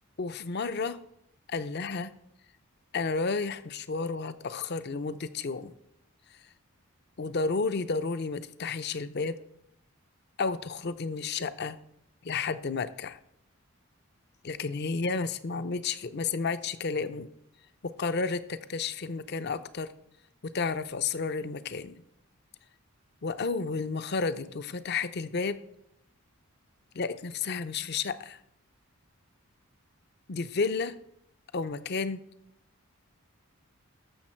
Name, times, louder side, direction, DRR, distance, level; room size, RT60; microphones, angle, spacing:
voice 1, 0.2-1.0 1.5-2.1 2.9-5.7 7.2-9.4 10.4-11.8 12.2-13.2 14.4-17.3 17.8-19.9 20.4-22.0 23.2-25.6 26.9-28.4 30.3-31.0 31.5-32.2, left 4 dB, 50° left, 13 dB, 0.6 m, -31 dB
13.5 x 6.5 x 4.4 m, 0.77 s
head